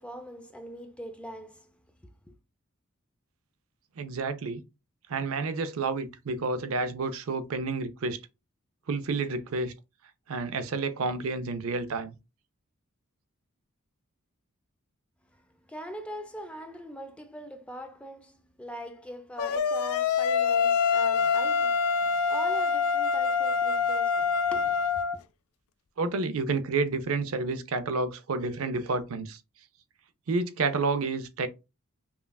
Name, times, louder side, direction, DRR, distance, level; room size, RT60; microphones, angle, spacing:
voice 1, 0.0-2.3 15.3-25.2, equal, 5° left, 0.5 m, -42 dB
voice 2, 4.0-4.6 5.1-8.2 8.9-9.7 10.3-12.1 26.0-29.4 30.3-31.5, right 3 dB, 65° right, 0.5 m, -30 dB
sound 1, 19.4-25.2, left 6 dB, 75° left, 0.4 m, -25 dB
5.5 x 2.3 x 2.3 m
head